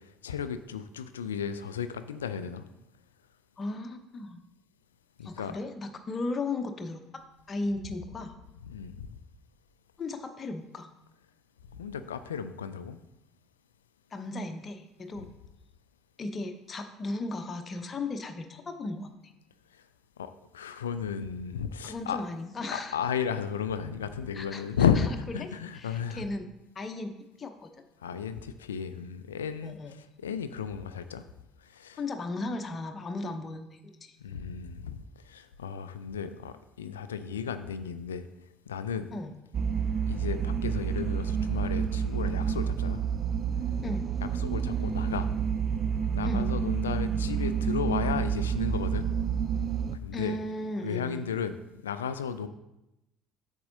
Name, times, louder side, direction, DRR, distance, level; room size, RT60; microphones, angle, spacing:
voice 1, 0.2-2.6 5.2-5.5 8.7-9.2 11.7-13.0 20.2-22.2 22.7-25.1 25.3-26.3 28.0-29.8 30.2-31.2 31.7-32.0 34.2-38.2 38.7-39.1 40.1-43.0 44.4-45.3 46.1-49.1 50.0-50.4 50.8-51.6 51.8-52.5, left 7 dB, 75° left, 11 dB, 0.3 m, -33 dB
voice 2, 3.6-4.4 5.2-7.0 7.5-8.3 10.0-10.9 14.1-15.3 16.2-19.3 21.8-23.0 24.3-25.1 25.4-26.5 26.7-27.1 27.4-27.7 29.6-30.0 32.0-34.2 39.1-39.3 43.8-44.1 46.2-46.5 50.1-51.3, left 2 dB, 30° left, 6 dB, 0.8 m, -36 dB
sound 1, 39.5-50.0, right 7 dB, 35° right, 0.3 m, -29 dB
8.5 x 6.3 x 2.7 m, 0.92 s
figure-of-eight pair, 60°, 0 cm